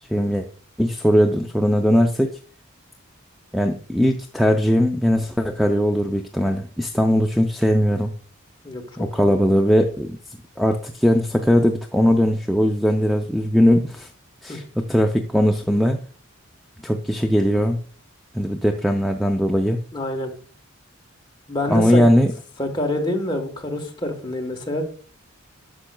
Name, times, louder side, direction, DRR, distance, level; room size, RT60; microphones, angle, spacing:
voice 1, 0.1-0.5 0.8-2.4 3.5-8.1 9.0-10.2 10.6-14.1 14.4-16.0 16.8-17.8 18.3-19.8 21.7-22.3, equal, ahead, 2 dB, 0.3 m, -19 dB
voice 2, 19.9-20.3 21.5-22.0 22.6-24.8, left 1 dB, 20° left, 2 dB, 1.1 m, -26 dB
9.9 x 6.3 x 2.2 m, 0.44 s
head